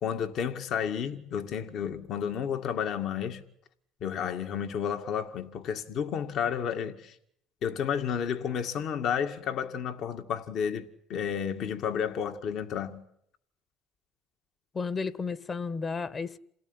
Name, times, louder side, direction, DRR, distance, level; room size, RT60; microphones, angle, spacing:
voice 1, 0.0-3.4 4.0-7.2 7.6-13.0, left 8 dB, 60° left, 2.1 m, -31 dB
voice 2, 14.7-16.4, left 4 dB, 30° left, 1.3 m, -33 dB
27.5 x 18.0 x 9.9 m
supercardioid pair, 80°, 0 cm